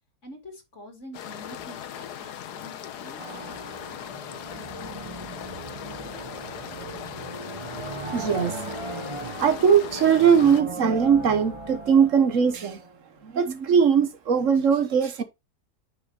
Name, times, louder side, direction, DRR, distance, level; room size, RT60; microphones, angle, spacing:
voice 1, 0.2-2.7 3.0-3.8, equal, 45° left, 3.3 m, -46 dB
sound 1, 1.1-10.6, left 9 dB, 70° left, 1.4 m, -39 dB
sound 2, 3.2-13.2, right 3 dB, 20° right, 0.9 m, -38 dB
voice 2, 8.1-8.6 9.4-12.8 13.2-15.2, right 7 dB, 55° right, 1.2 m, -20 dB
9.6 x 6.3 x 2.9 m
omnidirectional pair, 1.8 m